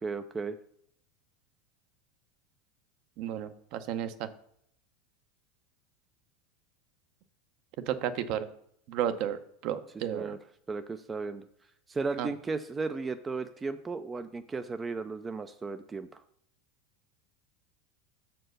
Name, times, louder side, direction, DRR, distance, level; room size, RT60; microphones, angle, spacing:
voice 1, 0.0-0.6 10.1-10.4 10.7-11.5 11.9-16.2, right 4 dB, 15° right, 9 dB, 0.4 m, -35 dB
voice 2, 3.2-4.3 7.9-8.5 8.9-10.3 12.2-12.3, right 10 dB, 50° right, 11 dB, 0.7 m, -33 dB
6.7 x 4.5 x 6.4 m, 0.71 s
supercardioid pair, 145°, 0 cm